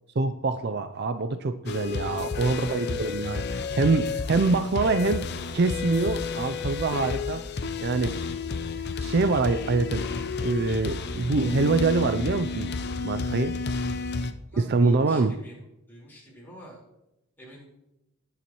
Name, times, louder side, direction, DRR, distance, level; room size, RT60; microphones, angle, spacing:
voice 1, 0.2-3.4 3.8-5.3 5.5-7.4 7.8-8.1 9.0-10.1 10.4-12.7 13.0-13.5 14.6-15.3, right 3 dB, 50° right, 9 dB, 0.4 m, -25 dB
sound 1, 1.7-14.3, left 4 dB, 50° left, 0.6 m, -31 dB
voice 2, 2.1-3.7 14.5-16.8 17.4-17.7, equal, 10° left, -5 dB, 4.3 m, -47 dB
20.0 x 7.1 x 3.0 m, 0.87 s
head